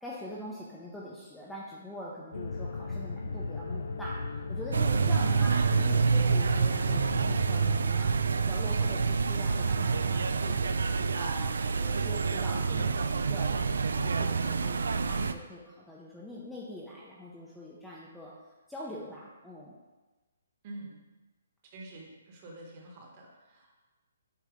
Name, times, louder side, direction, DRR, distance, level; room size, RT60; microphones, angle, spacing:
voice 1, 0.0-4.2 4.5-8.1 8.4-13.7 14.0-18.3 18.7-19.7, equal, 5° left, -6 dB, 0.5 m, -43 dB
sound 1, 2.3-7.9, left 3 dB, 85° left, 0.5 m, -36 dB
sound 2, 4.7-15.3, right 5 dB, 80° right, 0.4 m, -27 dB
voice 2, 20.6-21.0 21.7-23.8, right 2 dB, 25° right, -1 dB, 1.1 m, -47 dB
8.1 x 2.8 x 4.9 m, 1.2 s
hypercardioid pair, 170°, 0 cm